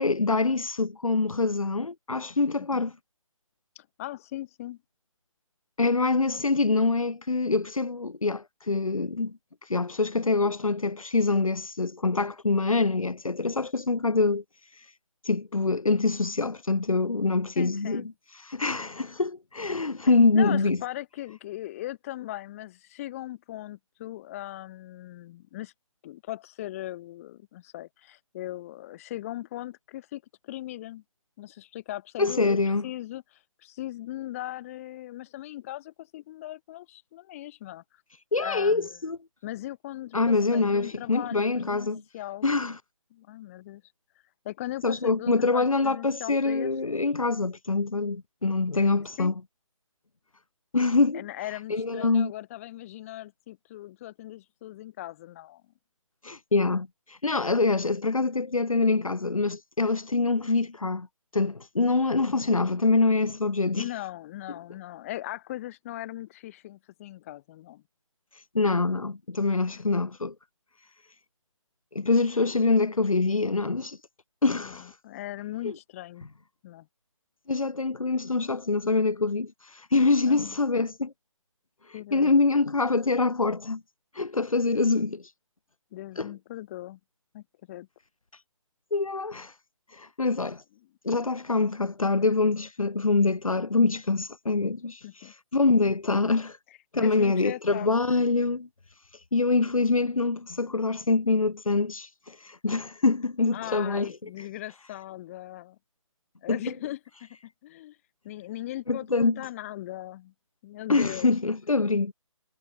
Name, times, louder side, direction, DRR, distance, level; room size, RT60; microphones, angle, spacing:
voice 1, 0.0-2.9 5.8-9.3 9.6-14.4 14.8-14.9 15.2-18.0 18.4-20.8 32.2-32.8 38.3-39.2 40.1-42.0 42.4-42.8 44.8-49.3 50.7-51.2 51.7-52.3 56.2-61.1 61.3-63.9 68.5-70.3 71.9-74.0 74.4-74.9 75.6-75.7 77.5-81.1 82.1-83.8 84.1-85.3 86.2-86.3 88.9-89.5 89.9-90.6 91.0-96.6 96.9-98.7 99.3-104.1 106.5-106.6 108.9-109.4 110.9-112.1, left 3 dB, 80° left, 1.2 m, -25 dB
voice 2, 3.8-4.8 17.6-18.1 20.3-25.7 26.0-31.0 31.4-37.8 38.4-39.0 39.4-42.5 43.1-43.8 44.4-46.7 48.7-48.8 49.2-49.4 51.1-55.6 63.8-67.8 69.7-69.8 74.5-76.3 76.6-76.9 80.3-80.6 81.9-82.4 85.9-87.0 87.3-87.9 95.0-95.3 97.0-98.0 103.5-105.8 106.4-108.0 108.2-110.3 110.6-111.3, left 15 dB, 25° left, 3.8 m, -39 dB
figure-of-eight pair, 150°, 17 cm